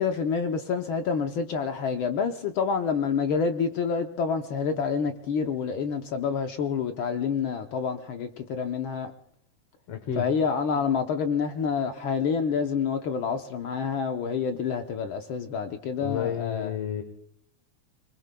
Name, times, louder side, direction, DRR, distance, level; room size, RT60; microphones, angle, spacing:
voice 1, 0.0-9.1 10.2-16.7, left 6 dB, 85° left, 1.1 m, -28 dB
voice 2, 9.9-10.3 16.0-17.0, left 9 dB, 65° left, 1.9 m, -30 dB
27.5 x 21.0 x 2.2 m
omnidirectional pair, 3.3 m